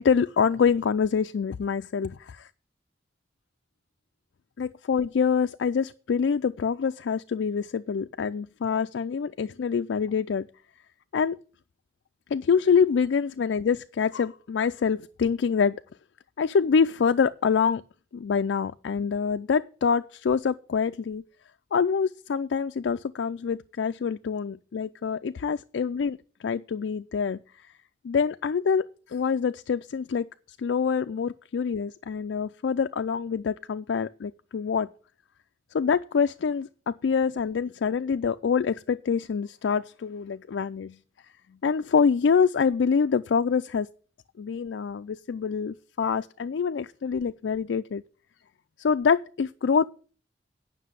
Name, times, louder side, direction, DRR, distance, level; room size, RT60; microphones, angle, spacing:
voice 1, 0.0-2.5 4.6-10.5 11.1-11.4 12.3-15.8 16.4-17.8 18.1-21.2 21.7-27.4 28.0-30.3 30.6-34.9 35.7-41.0 41.6-43.9 44.4-48.0 48.8-49.9, left 6 dB, 85° left, 0.4 m, -25 dB
9.4 x 6.0 x 8.0 m
head